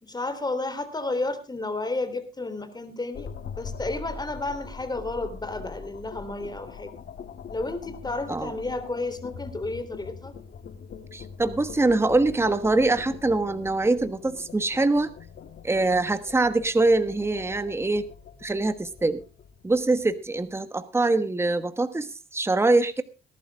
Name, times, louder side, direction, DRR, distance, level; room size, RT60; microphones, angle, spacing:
voice 1, 0.0-6.9 7.5-10.3, left 2 dB, 20° left, 10 dB, 3.4 m, -32 dB
sound 1, 3.1-20.4, left 6 dB, 55° left, 1.6 m, -42 dB
voice 2, 11.1-15.1 15.6-18.1 18.4-19.2 19.6-23.0, right 2 dB, 10° right, 11 dB, 1.2 m, -23 dB
18.5 x 11.5 x 3.6 m, 0.31 s
cardioid pair, 90°, 20 cm